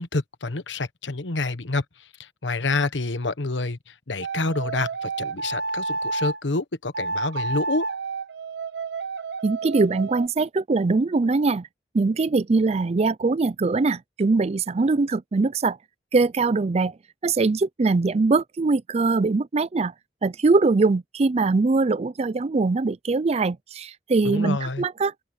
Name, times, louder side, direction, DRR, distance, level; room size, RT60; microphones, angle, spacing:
voice 1, 0.0-1.8 2.2-7.8 24.2-24.8, left 3 dB, 85° left, 1.2 m, -28 dB
sound 1, 4.2-6.4 6.9-10.3, right 3 dB, 65° right, 0.8 m, -30 dB
voice 2, 9.4-11.7 11.9-15.8 16.1-16.9 17.2-19.9 20.2-25.1, right 3 dB, 35° right, 0.4 m, -22 dB
head